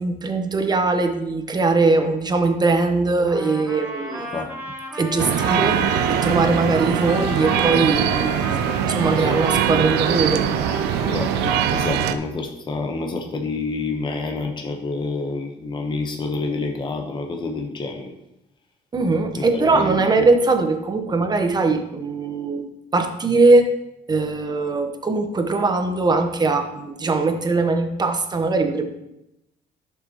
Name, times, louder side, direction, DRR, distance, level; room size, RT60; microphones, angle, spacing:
voice 1, 0.0-4.3 4.9-5.8 6.1-8.4 8.9-10.5 18.9-23.7 24.1-28.9, right 3 dB, 25° right, 6 dB, 1.0 m, -21 dB
Trumpet, 3.2-11.7, equal, 10° right, 2.8 m, -34 dB
sound 1, 5.2-12.2, right 9 dB, 85° right, 0.5 m, -22 dB
voice 2, 11.0-18.1 19.3-20.3, left 3 dB, 25° left, 3 dB, 1.0 m, -28 dB
11.5 x 6.7 x 3.0 m, 0.87 s
cardioid pair, 110°, 17 cm